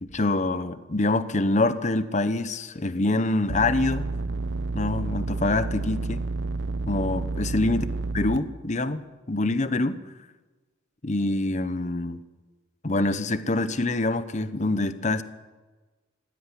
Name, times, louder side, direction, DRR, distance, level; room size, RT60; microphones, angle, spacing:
voice 1, 0.0-4.1 4.7-6.2 6.9-7.9 8.1-10.0 11.0-12.2 12.8-15.2, left 2 dB, 40° left, 12 dB, 1.0 m, -25 dB
sound 1, 3.5-8.4, right 3 dB, 65° right, 0.7 m, -30 dB
16.5 x 16.5 x 9.9 m, 1.3 s
head